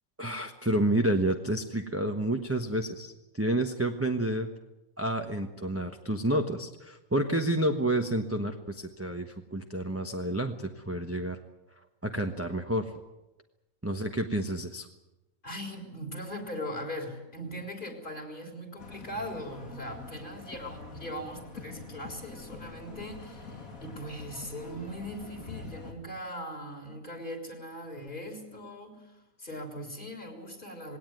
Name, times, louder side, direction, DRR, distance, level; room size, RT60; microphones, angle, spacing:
voice 1, 0.2-4.5 5.0-11.4 12.0-12.9 13.8-14.9, right 1 dB, 10° right, 4 dB, 1.1 m, -29 dB
voice 2, 15.4-31.0, equal, 35° left, 3 dB, 4.0 m, -40 dB
sound 1, 18.8-25.9, left 4 dB, 70° left, 3.0 m, -45 dB
20.0 x 17.5 x 9.3 m, 0.99 s
omnidirectional pair, 1.5 m